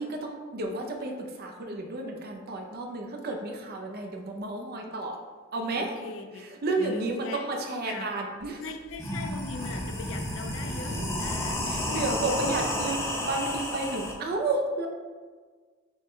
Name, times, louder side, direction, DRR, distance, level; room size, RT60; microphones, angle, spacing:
voice 1, 0.0-5.2 5.5-5.9 6.4-8.6 11.7-14.9, right 2 dB, 50° right, 2 dB, 0.5 m, -32 dB
voice 2, 5.7-6.4 6.8-7.5 7.9-8.1 8.6-13.0, left 3 dB, 75° left, 6 dB, 0.5 m, -40 dB
sound 1, 8.4-8.5 8.9-14.1, left 1 dB, 15° left, 0.6 m, -31 dB
6.2 x 2.2 x 3.6 m, 1.5 s
head